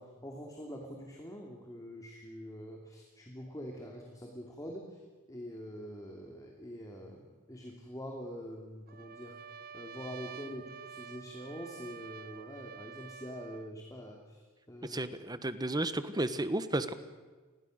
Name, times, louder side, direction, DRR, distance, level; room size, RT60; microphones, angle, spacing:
voice 1, 0.0-5.0 5.3-9.4 9.7-15.0, equal, 15° left, 0 dB, 2.9 m, -45 dB
Trumpet, 8.9-13.7, right 7 dB, 45° right, 0.9 m, -49 dB
voice 2, 14.8-16.9, right 1 dB, 20° right, 12 dB, 1.3 m, -33 dB
28.5 x 21.5 x 6.6 m, 1.4 s
head